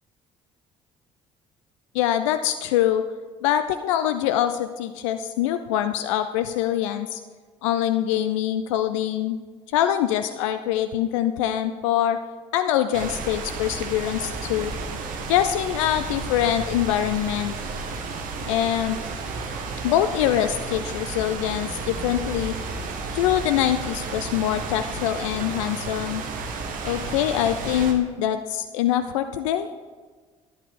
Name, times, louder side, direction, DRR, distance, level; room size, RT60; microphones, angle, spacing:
voice 1, 1.9-3.0 3.4-7.2 7.6-9.4 9.7-12.2 12.5-14.7 15.3-17.5 18.5-19.0 19.8-22.5 23.1-26.2 26.8-29.7, left 11 dB, 75° left, 10 dB, 0.5 m, -24 dB
sound 1, 12.9-27.9, right 4 dB, 60° right, 1.6 m, -32 dB
12.5 x 11.0 x 3.7 m, 1.4 s
hypercardioid pair, 55°, 16 cm